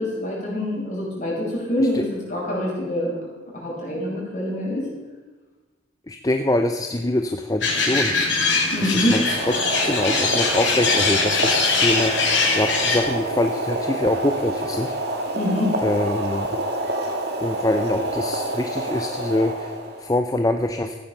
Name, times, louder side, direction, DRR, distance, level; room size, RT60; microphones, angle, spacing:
voice 1, 0.0-3.1 3.5-4.9 8.7-9.2 15.3-15.7, left 1 dB, 40° left, -5 dB, 5.6 m, -25 dB
voice 2, 6.1-8.1 8.8-9.2 9.8-14.9 15.8-16.5 17.4-19.7 20.0-20.9, left 1 dB, 20° left, 6 dB, 0.6 m, -24 dB
sound 1, 7.6-13.0, left 4 dB, 70° left, 2.9 m, -22 dB
Boiling, 9.1-20.1, right 1 dB, 55° right, 2.0 m, -27 dB
14.5 x 9.3 x 6.8 m, 1.2 s
head